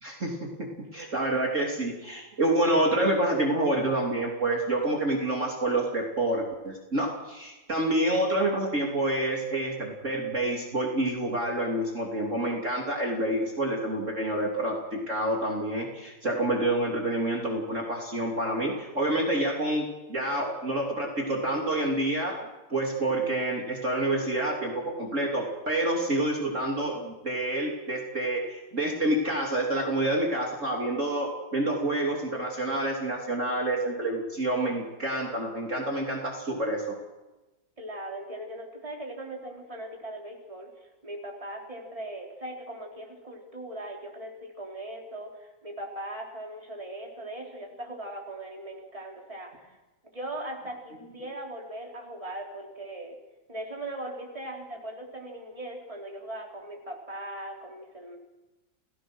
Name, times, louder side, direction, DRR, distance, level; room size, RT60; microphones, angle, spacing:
voice 1, 0.0-22.4 22.7-36.9, right 1 dB, 35° right, -1 dB, 3.6 m, -28 dB
voice 2, 37.8-49.7 50.1-53.2 53.5-58.2, right 1 dB, 15° right, 0 dB, 3.9 m, -39 dB
29.0 x 18.0 x 6.3 m, 1.1 s
omnidirectional pair, 2.1 m